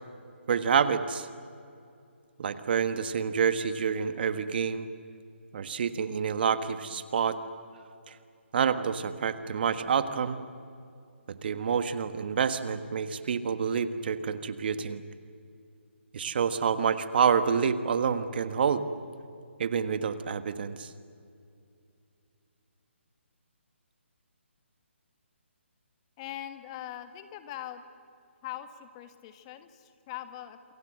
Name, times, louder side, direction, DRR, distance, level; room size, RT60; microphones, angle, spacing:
voice 1, 0.5-1.3 2.4-4.9 5.5-7.4 8.1-8.2 8.5-10.4 11.3-15.0 16.1-18.8 19.6-20.9, right 6 dB, 50° right, 10 dB, 1.5 m, -28 dB
voice 2, 26.2-27.8 28.4-30.7, left 12 dB, 25° left, 9 dB, 1.5 m, -41 dB
27.5 x 23.0 x 7.8 m, 2.5 s
figure-of-eight pair, 150°, 7 cm